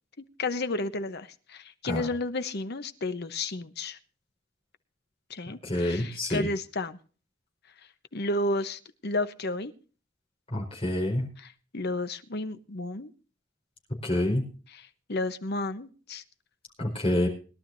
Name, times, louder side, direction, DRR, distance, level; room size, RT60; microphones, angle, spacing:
voice 1, 0.4-4.0 5.3-7.0 8.1-9.7 11.4-13.1 14.7-16.2, left 2 dB, 50° left, 11 dB, 1.0 m, -32 dB
voice 2, 5.6-6.5 10.5-11.3 14.0-14.4 16.8-17.3, left 1 dB, 30° left, -1 dB, 4.5 m, -27 dB
21.5 x 11.5 x 2.7 m, 0.38 s
head